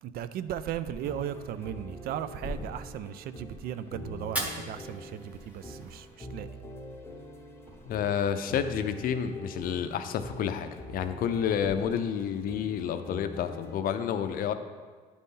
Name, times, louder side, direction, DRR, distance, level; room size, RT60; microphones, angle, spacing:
voice 1, 0.0-6.5, right 10 dB, 60° right, 13 dB, 0.4 m, -36 dB
sound 1, 0.9-13.8, left 1 dB, 15° left, 0.7 m, -45 dB
Thump thud, 2.0-5.3 5.7-6.5 6.8-8.2 8.6-10.1 10.5-11.0 11.6-12.6 12.9-13.1, left 1 dB, 30° right, 1.5 m, -47 dB
Fire, 4.2-6.2, equal, 10° right, 1.0 m, -38 dB
voice 2, 7.8-14.5, left 8 dB, 55° left, 9 dB, 0.5 m, -30 dB
10.0 x 4.1 x 3.7 m, 1.5 s
cardioid pair, 120°, 17 cm